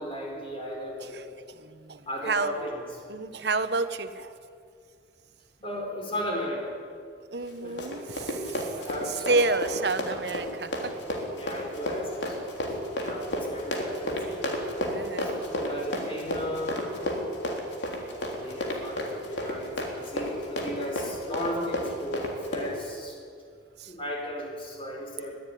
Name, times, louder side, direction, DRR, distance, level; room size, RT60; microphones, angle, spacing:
voice 1, 0.0-1.3 2.1-2.8 5.6-6.8 7.6-7.8 8.7-9.8 10.1-10.2 11.3-14.4 15.1-16.8 17.9-23.2 23.9-25.4, equal, 30° left, 0 dB, 4.6 m, -36 dB
voice 2, 1.0-2.6 3.1-4.3 7.3-8.8 9.1-10.9 14.9-15.4 23.8-23.9, right 3 dB, 65° right, 10 dB, 1.2 m, -30 dB
Run, 7.4-22.7, left 1 dB, 75° left, 3.6 m, -32 dB
21.5 x 13.0 x 10.0 m, 2.2 s
head